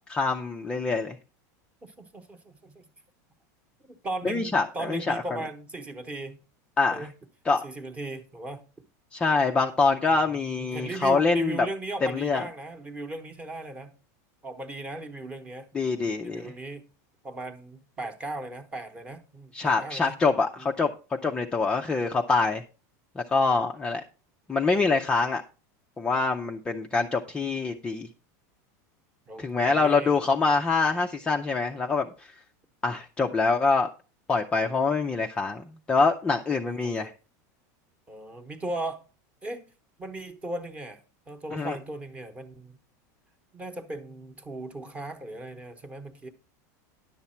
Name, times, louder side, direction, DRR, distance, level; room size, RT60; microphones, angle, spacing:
voice 1, 0.1-1.2 4.2-5.2 6.8-7.1 7.5-7.6 9.1-11.7 12.0-12.4 15.7-16.5 19.5-20.9 21.2-22.6 23.2-24.0 24.5-25.4 26.0-28.1 29.4-32.3 32.8-33.9 34.3-37.1 41.5-41.7, left 4 dB, 10° left, 0.4 m, -25 dB
voice 2, 1.8-2.9 3.9-6.4 6.9-7.1 7.6-8.6 10.4-13.9 14.4-16.9 17.2-20.2 20.6-20.7 26.9-27.1 27.4-27.7 29.3-30.2 36.5-37.1 38.1-39.0 39.4-39.6 40.0-42.8 43.5-46.3, right 2 dB, 15° right, 1.0 m, -38 dB
10.5 x 7.1 x 4.3 m
supercardioid pair, 165°, 9 cm